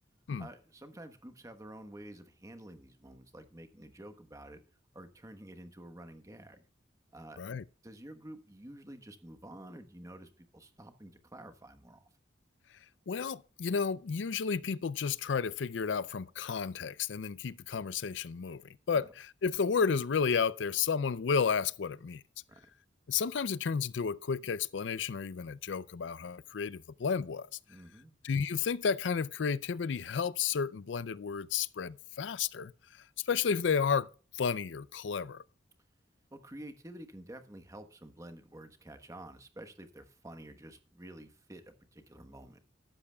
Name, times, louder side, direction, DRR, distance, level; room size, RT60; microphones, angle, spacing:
voice 1, 0.4-4.6 4.9-6.6 7.1-7.4 7.8-12.1 18.9-19.1 22.5-22.7 27.7-28.2 36.3-42.6, right 1 dB, 20° right, 1.2 m, -50 dB
voice 2, 13.1-18.6 18.9-22.2 23.1-27.5 28.2-32.7 33.2-34.1 34.3-35.4, left 6 dB, 85° left, 0.5 m, -32 dB
14.0 x 12.0 x 2.3 m
head